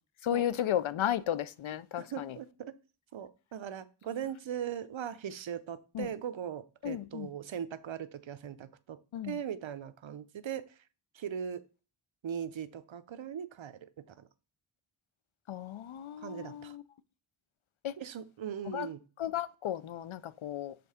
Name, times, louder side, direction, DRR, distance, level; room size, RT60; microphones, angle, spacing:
voice 1, 0.2-2.4 5.9-6.1 6.8-7.3 9.1-9.4 15.5-16.8 17.8-18.0 18.7-18.9 19.2-20.8, left 11 dB, 80° left, 0.6 m, -34 dB
voice 2, 1.9-2.7 3.1-10.6 11.1-11.6 12.2-14.3 16.2-16.8 18.0-19.0, right 8 dB, 75° right, 0.7 m, -39 dB
6.9 x 3.7 x 5.6 m
wide cardioid pair, 80°, 47 cm